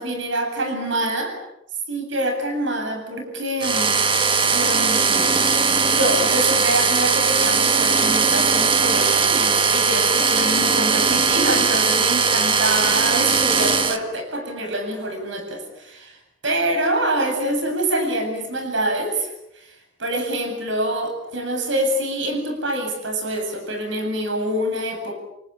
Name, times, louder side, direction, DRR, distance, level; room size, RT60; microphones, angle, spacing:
voice 1, 0.0-1.4 1.9-4.0 4.4-16.2 16.4-25.1, right 1 dB, 65° right, 5 dB, 7.9 m, -26 dB
sound 1, 3.6-14.0, right 5 dB, 25° right, 1.9 m, -19 dB
29.5 x 27.5 x 7.2 m, 0.83 s
head